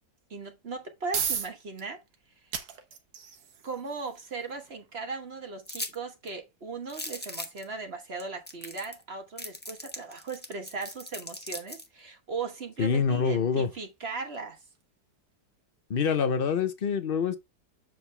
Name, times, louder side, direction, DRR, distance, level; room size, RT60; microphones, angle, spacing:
voice 1, 0.3-2.0 3.6-14.6, right 4 dB, 40° right, 1.2 m, -38 dB
sound 1, 0.6-15.5, right 7 dB, 90° right, 1.9 m, -42 dB
sound 2, 5.7-5.9 6.3-6.4 6.9-7.6 8.2-8.3 8.5-9.0 9.4-11.9, left 1 dB, 5° left, 0.9 m, -38 dB
voice 2, 12.8-13.7 15.9-17.4, left 6 dB, 50° left, 0.7 m, -26 dB
7.7 x 5.2 x 3.2 m
omnidirectional pair, 1.9 m